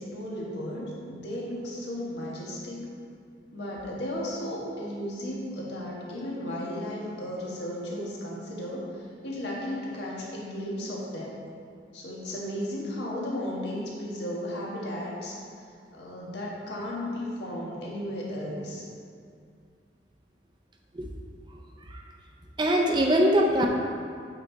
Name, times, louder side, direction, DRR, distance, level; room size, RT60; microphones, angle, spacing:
voice 1, 0.0-2.9 3.5-11.4 11.9-15.4 15.9-18.8, left 1 dB, 70° left, -4 dB, 1.5 m, -34 dB
voice 2, 22.6-23.7, equal, 25° right, 0 dB, 0.5 m, -22 dB
8.6 x 4.1 x 4.0 m, 2.3 s
head